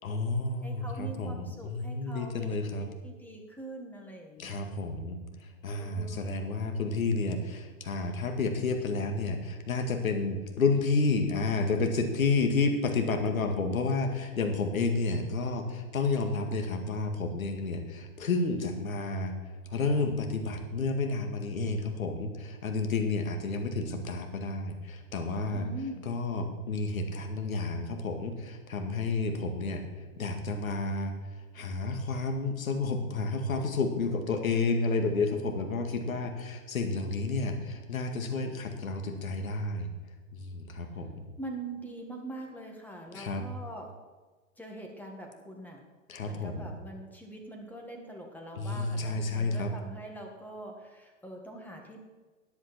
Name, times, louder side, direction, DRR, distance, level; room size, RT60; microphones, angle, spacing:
voice 1, 0.0-2.9 4.4-19.4 19.7-25.6 26.1-31.1 31.5-39.9 40.3-41.2 43.1-43.4 46.1-46.7 48.5-49.7, left 3 dB, 85° left, 5 dB, 2.2 m, -30 dB
voice 2, 0.6-4.6 5.8-6.4 25.5-26.1 41.4-43.9 44.6-45.8 46.2-52.0, right 1 dB, 5° left, 1 dB, 1.9 m, -43 dB
13.5 x 9.6 x 4.4 m, 1.3 s
hypercardioid pair, 125°, 40 cm